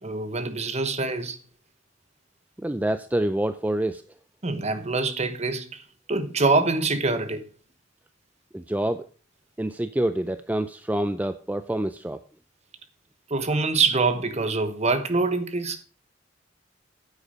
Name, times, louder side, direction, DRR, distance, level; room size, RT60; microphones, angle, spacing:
voice 1, 0.0-1.4 4.4-5.8 6.1-7.4 13.3-15.8, right 3 dB, 35° right, 1.1 m, -25 dB
voice 2, 2.6-4.0 8.5-9.1 9.6-12.2, right 1 dB, 10° right, 0.4 m, -27 dB
9.7 x 8.1 x 5.1 m
head